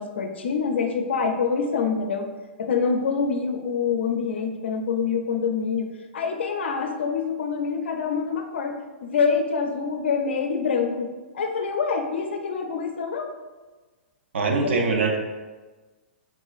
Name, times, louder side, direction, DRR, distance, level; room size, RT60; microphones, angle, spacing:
voice 1, 0.0-2.3 2.6-5.9 6.1-8.7 9.0-13.3 14.6-14.8, left 5 dB, 75° left, 5 dB, 0.4 m, -26 dB
voice 2, 14.3-15.2, right 3 dB, 75° right, 1 dB, 0.5 m, -22 dB
3.7 x 2.9 x 2.4 m, 1.3 s
hypercardioid pair, 115°, 6 cm